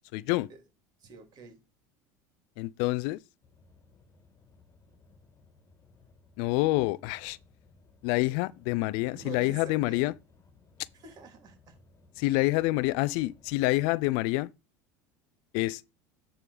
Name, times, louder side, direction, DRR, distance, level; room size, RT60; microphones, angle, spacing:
voice 1, 0.1-0.5 2.6-3.2 6.4-7.4 8.0-10.1 12.2-14.5 15.5-15.8, left 20 dB, 70° left, 0.4 m, -27 dB
voice 2, 1.0-1.6 9.1-10.0 10.9-11.8, right 6 dB, 45° right, 3.0 m, -46 dB
sound 1, 3.4-13.9, left 3 dB, 30° left, 1.7 m, -60 dB
9.6 x 3.7 x 5.0 m
supercardioid pair, 100°, 9 cm